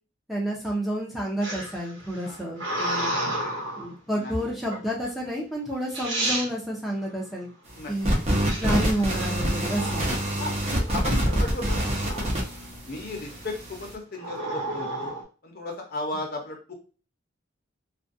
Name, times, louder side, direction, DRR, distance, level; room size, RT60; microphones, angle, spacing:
voice 1, 0.3-3.1 3.8-7.5 7.9-8.1 8.6-10.1, equal, ahead, -4 dB, 0.5 m, -30 dB
sound 1, 1.4-3.9 4.7-5.1 5.7-5.8 5.9-6.5 8.5-10.1 10.6-11.0 11.3-12.5 13.0-13.4 14.2-15.2, right 1 dB, 75° right, 1.0 m, -32 dB
voice 2, 2.2-2.5 4.1-4.7 7.7-7.9 10.4-11.9 12.9-15.1 15.4-16.7, left 2 dB, 50° left, 2 dB, 0.7 m, -35 dB
sound 2, 8.0-13.9, right 1 dB, 35° right, 0.7 m, -26 dB
2.4 x 2.2 x 2.5 m, 0.36 s
head